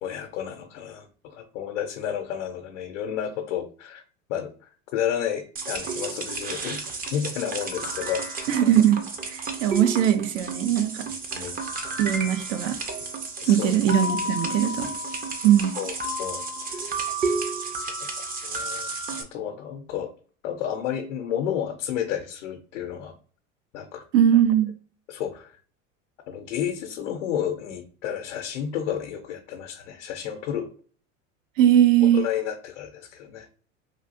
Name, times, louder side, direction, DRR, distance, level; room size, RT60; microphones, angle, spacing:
voice 1, 0.0-4.0 4.3-6.8 7.1-8.2 11.3-11.5 13.4-13.7 14.6-14.9 15.8-16.4 17.8-20.1 20.4-23.1 23.7-24.0 25.1-25.6 26.3-30.7 32.1-33.5, left 9 dB, 75° left, 0.6 m, -31 dB
sound 1, 5.6-19.2, right 3 dB, 25° right, 0.5 m, -32 dB
voice 2, 8.5-9.0 9.3-11.1 12.0-12.8 13.5-14.9 15.4-15.8 24.1-24.7 31.6-32.2, right 10 dB, 75° right, 0.6 m, -20 dB
3.1 x 2.4 x 2.6 m
hypercardioid pair, 90°, 39 cm